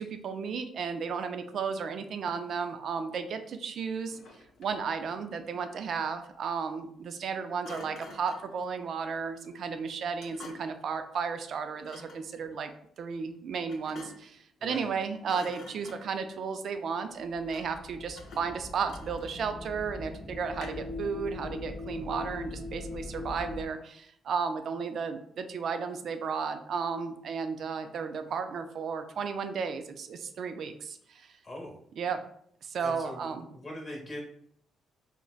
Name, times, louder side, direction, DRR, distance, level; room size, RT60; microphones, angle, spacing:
voice 1, 0.0-4.2 4.6-12.7 13.0-31.3 32.0-32.2 32.6-33.5, right 5 dB, 60° right, 8 dB, 0.3 m, -34 dB
Thump thud, 4.1-4.9 7.6-8.5 10.2-10.8 11.8-12.3 13.7-14.4 14.7-15.0 15.2-16.3 17.5-17.8 18.2-19.5 20.5-21.0, left 3 dB, 65° left, 0.6 m, -48 dB
voice 2, 14.6-14.9 31.4-31.8 32.8-34.2, left 1 dB, 30° left, -1 dB, 1.0 m, -42 dB
sound 1, 17.2-23.7, left 2 dB, 5° right, 0.5 m, -41 dB
3.8 x 2.1 x 2.4 m, 0.67 s
cardioid pair, 90°, 0 cm